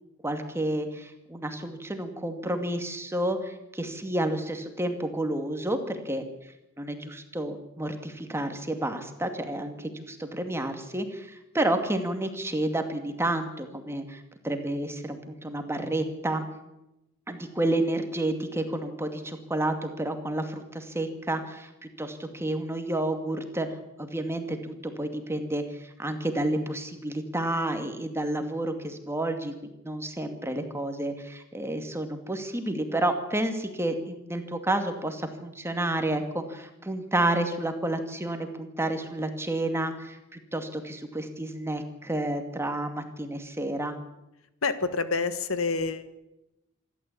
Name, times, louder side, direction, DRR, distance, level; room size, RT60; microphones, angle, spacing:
voice 1, 0.2-6.2 6.8-16.4 17.3-21.7 22.0-23.7 24.0-29.5 29.8-44.0, right 1 dB, 10° right, 6 dB, 2.3 m, -30 dB
voice 2, 44.6-46.0, left 4 dB, 75° left, 11 dB, 1.6 m, -27 dB
26.5 x 12.5 x 8.6 m, 0.92 s
head